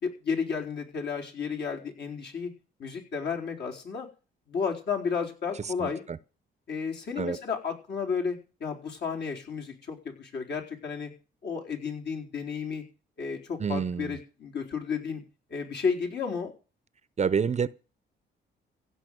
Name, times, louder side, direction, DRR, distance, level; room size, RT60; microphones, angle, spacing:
voice 1, 0.0-2.5 2.8-4.1 4.5-6.1 6.7-11.1 11.4-12.8 13.2-15.2 15.5-16.5, left 6 dB, 60° left, 4.5 m, -32 dB
voice 2, 5.6-6.2 7.2-7.4 13.6-14.2 17.2-17.7, right 6 dB, 35° right, 0.7 m, -28 dB
16.0 x 5.7 x 9.3 m
cardioid pair, 90°, 20 cm